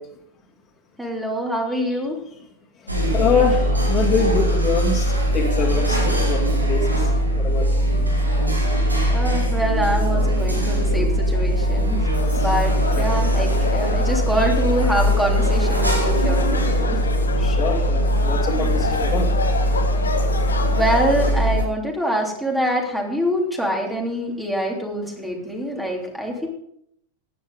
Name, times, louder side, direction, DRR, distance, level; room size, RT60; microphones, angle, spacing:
voice 1, 1.0-2.2 9.1-12.1 12.4-17.0 20.7-26.5, equal, 5° right, 3.1 m, -25 dB
sound 1, 2.9-21.6, equal, 85° right, 2.8 m, -20 dB
voice 2, 3.1-6.9 7.4-7.7 17.4-19.3, left 5 dB, 25° left, 2.6 m, -24 dB
sound 2, 12.1-21.3, left 4 dB, 70° left, 1.6 m, -29 dB
15.0 x 10.5 x 3.9 m
figure-of-eight pair, 90°, 0 cm